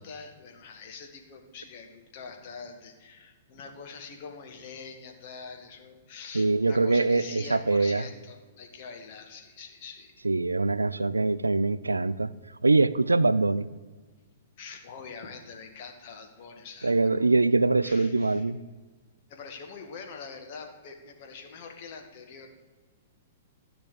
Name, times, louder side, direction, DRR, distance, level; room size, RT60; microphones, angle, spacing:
voice 1, 0.0-10.1 14.6-17.3 17.8-18.5 19.3-22.5, left 5 dB, 50° left, 4 dB, 2.1 m, -44 dB
voice 2, 6.3-8.1 10.2-12.3 12.6-13.7 16.8-18.6, right 3 dB, 85° right, 17 dB, 0.4 m, -23 dB
13.5 x 6.1 x 8.6 m, 1.4 s
figure-of-eight pair, 110°, 0 cm